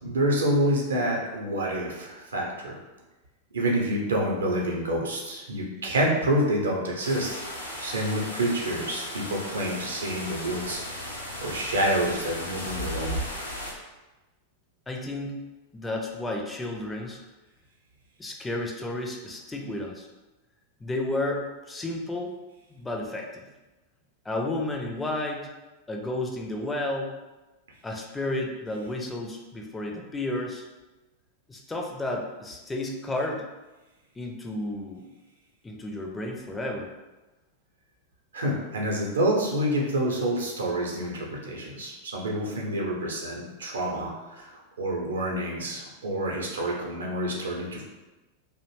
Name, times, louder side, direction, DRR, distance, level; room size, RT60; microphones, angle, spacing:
voice 1, 0.0-2.7 3.5-7.4 7.8-11.1 11.4-13.2 38.3-44.5 44.8-47.8, right 1 dB, 70° right, -1 dB, 0.5 m, -28 dB
sound 1, 7.0-13.7, equal, 80° left, 0.5 m, -35 dB
voice 2, 14.9-15.4 15.7-17.2 18.2-20.1 20.8-22.3 22.7-23.4 24.3-25.5 25.9-27.1 27.8-30.6 31.5-33.4 34.2-35.1 35.6-36.9, left 2 dB, 10° left, 1 dB, 0.4 m, -32 dB
2.5 x 2.0 x 3.1 m, 1.1 s
figure-of-eight pair, 90°, 0 cm